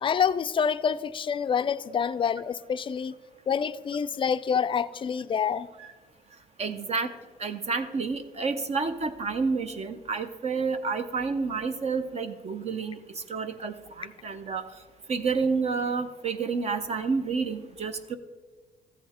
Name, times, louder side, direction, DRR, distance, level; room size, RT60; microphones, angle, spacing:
voice 1, 0.0-3.1 3.5-5.7, left 7 dB, 30° left, 0.4 m, -27 dB
voice 2, 6.6-7.1 7.4-14.6 15.1-18.2, right 4 dB, 40° right, 0.7 m, -29 dB
14.0 x 7.7 x 4.3 m
cardioid pair, 110°, 17 cm